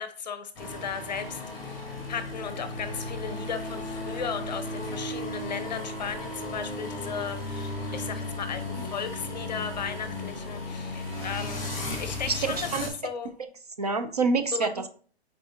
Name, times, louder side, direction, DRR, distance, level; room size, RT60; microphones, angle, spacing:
voice 1, 0.0-1.8 2.1-11.7 12.0-13.3 14.5-14.8, left 6 dB, 40° left, 10 dB, 0.7 m, -36 dB
sound 1, 0.5-12.9, left 2 dB, 10° left, 1.7 m, -35 dB
voice 2, 12.3-12.8 13.8-14.9, right 4 dB, 40° right, 8 dB, 0.5 m, -27 dB
7.4 x 4.7 x 2.8 m, 0.44 s
hypercardioid pair, 175°, 32 cm